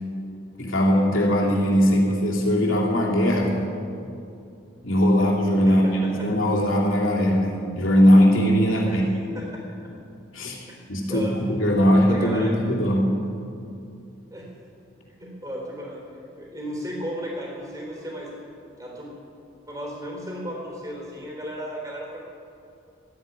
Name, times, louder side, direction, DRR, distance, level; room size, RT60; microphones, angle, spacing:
voice 1, 0.6-3.7 4.8-9.0 10.3-10.6 10.9-13.1, equal, 80° left, -2 dB, 2.9 m, -20 dB
voice 2, 5.7-6.3 8.9-9.0 9.3-9.5 10.7-10.8 11.1-11.6 12.1-12.6 14.3-14.5 15.2-16.0 16.3-18.3 18.7-19.1 19.7-22.3, equal, 15° right, -2 dB, 3.5 m, -34 dB
13.0 x 9.1 x 9.3 m, 2.6 s
head